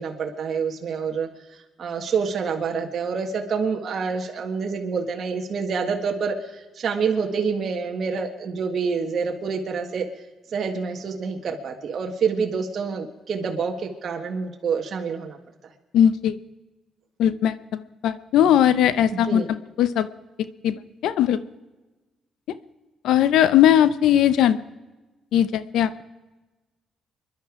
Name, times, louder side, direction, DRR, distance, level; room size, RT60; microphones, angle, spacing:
voice 1, 0.0-10.1 10.5-15.4 19.3-19.5, right 5 dB, 60° right, 2 dB, 1.7 m, -27 dB
voice 2, 15.9-16.4 17.2-19.4 19.8-20.1 20.6-20.7 21.0-21.4 23.0-24.6 25.3-25.9, left 10 dB, 85° left, 14 dB, 0.7 m, -19 dB
25.5 x 11.5 x 4.9 m, 1.2 s
cardioid pair, 80°, 0 cm